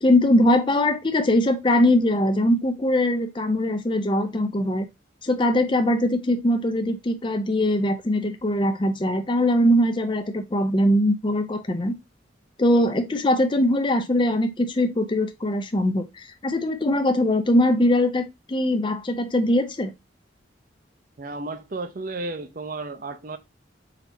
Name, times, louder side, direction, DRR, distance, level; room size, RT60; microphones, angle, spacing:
voice 1, 0.0-4.9 5.2-12.0 12.6-19.9, left 1 dB, 25° left, 0.5 m, -21 dB
voice 2, 21.2-23.4, right 3 dB, 45° right, 0.6 m, -33 dB
4.1 x 2.8 x 4.0 m
head